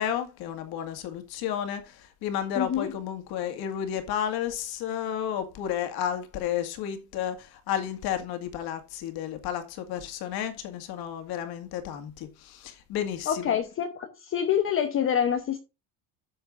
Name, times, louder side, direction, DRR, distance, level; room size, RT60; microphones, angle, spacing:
voice 1, 0.0-13.6, left 9 dB, 55° left, 2.2 m, -32 dB
voice 2, 2.6-2.9 13.3-15.6, left 8 dB, 30° left, 0.9 m, -26 dB
12.5 x 7.8 x 2.6 m
cardioid pair, 165°, 45 cm